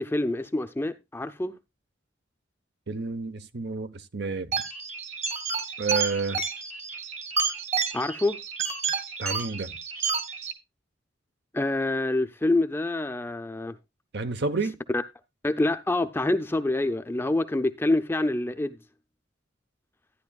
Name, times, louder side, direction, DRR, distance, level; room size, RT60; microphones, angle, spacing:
voice 1, 0.0-1.6 7.9-8.4 11.5-13.8 14.9-15.0 15.4-18.8, left 2 dB, 10° left, 0.5 m, -26 dB
voice 2, 2.9-4.5 5.8-6.4 9.2-9.7 14.1-14.8, right 4 dB, 60° right, 0.8 m, -30 dB
sound 1, 4.5-10.5, right 5 dB, 35° right, 1.4 m, -30 dB
13.0 x 10.0 x 2.3 m
head